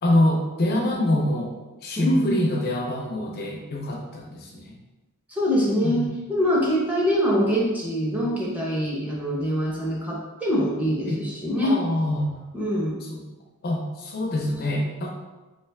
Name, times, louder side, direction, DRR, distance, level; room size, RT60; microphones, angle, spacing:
voice 1, 0.0-1.5 1.8-4.8 5.8-6.0 11.0-11.2 11.6-12.3 13.0-13.2 13.6-15.1, left 1 dB, 45° left, 0 dB, 0.5 m, -25 dB
voice 2, 0.9-1.2 2.0-2.4 5.3-11.7 12.5-13.0, equal, 5° right, -4 dB, 0.7 m, -24 dB
3.2 x 3.0 x 3.3 m, 1.1 s
head